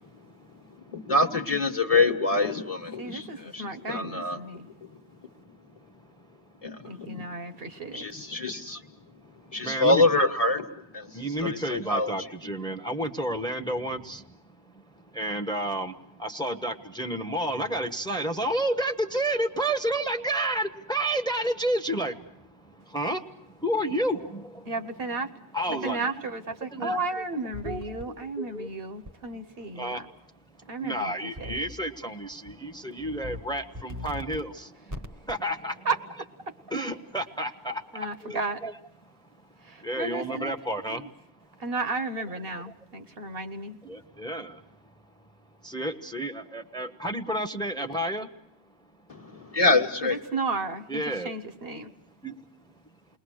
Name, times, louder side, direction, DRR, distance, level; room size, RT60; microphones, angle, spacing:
voice 1, 0.9-4.4 4.8-4.9 6.6-7.2 7.9-8.8 9.5-10.6 10.9-12.1 49.1-50.2, left 2 dB, 35° left, 3 dB, 1.5 m, -25 dB
voice 2, 3.0-4.7 6.8-8.1 24.7-25.3 25.8-30.1 30.7-31.6 35.8-36.0 36.5-36.6 37.9-38.6 39.6-40.5 40.9-41.1 41.6-43.8 50.0-51.9, right 3 dB, 60° right, 8 dB, 1.3 m, -33 dB
voice 3, 9.6-10.0 11.1-14.2 15.1-15.9 16.2-22.1 22.9-23.2 23.6-24.6 25.5-26.2 26.7-27.0 27.6-28.7 29.8-30.0 30.8-34.7 35.3-35.7 36.7-37.8 38.2-38.7 39.8-41.0 43.8-44.5 45.6-48.3 50.9-51.3 52.2-52.3, right 1 dB, 5° left, 8 dB, 1.1 m, -30 dB
sound 1, 27.5-28.0 29.1-29.2 31.4-31.8 32.2-32.5 33.0-33.4 33.7-34.4 34.9-35.3, left 1 dB, 15° right, 1.0 m, -39 dB
29.0 x 21.5 x 6.4 m, 0.78 s
omnidirectional pair, 1.1 m